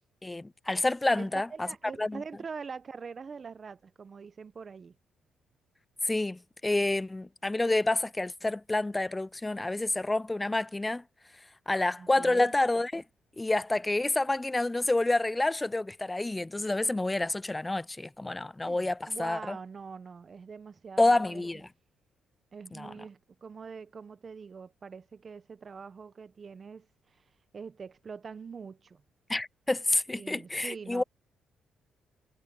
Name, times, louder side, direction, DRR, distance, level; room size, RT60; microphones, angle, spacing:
voice 1, 0.2-1.7 2.0-2.2 6.0-11.0 11.7-13.0 13.4-19.6 21.0-21.7 22.7-22.9 29.3-31.0, left 2 dB, 15° left, 0.4 m, -28 dB
voice 2, 1.1-5.0 12.0-12.5 18.7-21.5 22.5-27.2 27.5-29.0 30.1-31.0, right 5 dB, 40° right, 0.9 m, -44 dB
cardioid pair, 90°, 0 cm